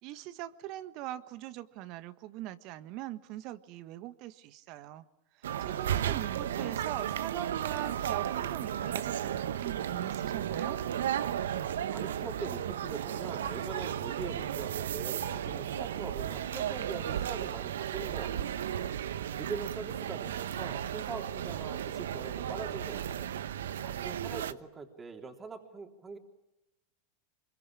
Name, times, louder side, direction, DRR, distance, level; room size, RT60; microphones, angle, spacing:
voice 1, 0.0-5.0 5.3-10.8, right 14 dB, 50° right, 13 dB, 1.5 m, -42 dB
sound 1, 5.4-24.5, right 10 dB, 80° right, 1.0 m, -34 dB
voice 2, 6.6-6.9 11.9-18.5 19.4-23.3 23.8-26.2, right 4 dB, 20° right, 3 dB, 3.4 m, -43 dB
25.0 x 23.0 x 8.9 m, 0.94 s
hypercardioid pair, 100°, 0 cm